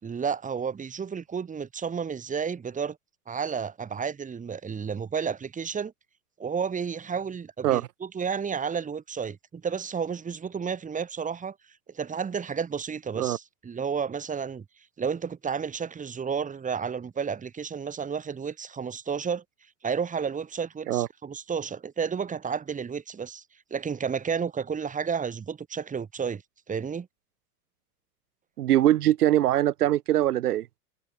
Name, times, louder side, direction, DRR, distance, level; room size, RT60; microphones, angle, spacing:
voice 1, 0.0-3.0 3.3-5.9 6.4-11.5 11.9-14.6 15.0-19.4 19.8-23.4 23.7-26.4 26.7-27.1, right 6 dB, 15° right, 4.2 m, -31 dB
voice 2, 28.6-30.7, right 13 dB, 75° right, 3.3 m, -22 dB
hypercardioid pair, 125°, 45 cm